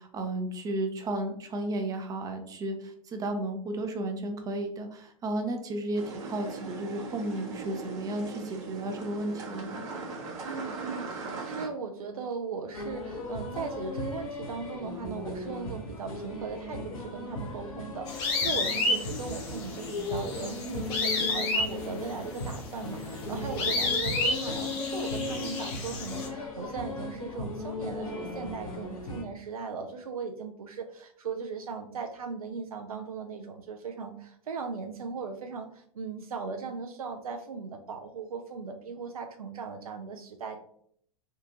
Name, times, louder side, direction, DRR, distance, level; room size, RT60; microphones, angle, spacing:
voice 1, 0.0-9.9, right 1 dB, 20° right, 6 dB, 0.5 m, -33 dB
sound 1, 5.9-11.7, right 4 dB, 55° right, 0.9 m, -39 dB
voice 2, 10.4-40.6, right 5 dB, 75° right, 5 dB, 0.4 m, -38 dB
sound 2, 12.7-29.2, left 2 dB, 70° left, 0.9 m, -37 dB
sound 3, 18.1-26.3, left 3 dB, 45° left, 0.9 m, -31 dB
3.6 x 2.4 x 2.7 m, 0.63 s
figure-of-eight pair, 95°, 19 cm